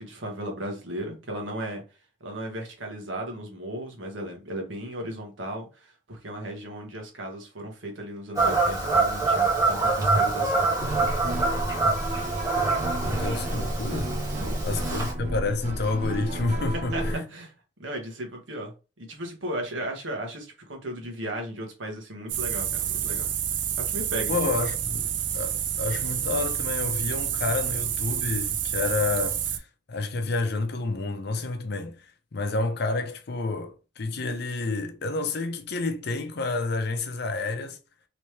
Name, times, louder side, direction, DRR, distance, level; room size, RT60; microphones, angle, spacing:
voice 1, 0.0-1.8 2.2-10.7 13.2-13.4 14.3-15.0 16.9-17.0 17.3-17.5 17.8-23.3 23.9-24.3, right 1 dB, 85° right, 1.2 m, -36 dB
Fowl / Bird vocalization bird call bird song, 8.3-15.1, right 3 dB, 20° right, 1.4 m, -25 dB
sound 1, 10.8-17.2, right 1 dB, 35° right, 0.8 m, -32 dB
voice 2, 13.1-14.1 14.6-17.2 24.3-32.1 32.3-37.8, left 3 dB, 60° left, 0.6 m, -29 dB
sound 2, 22.3-29.6, right 9 dB, 70° right, 0.5 m, -29 dB
3.2 x 3.0 x 3.2 m
head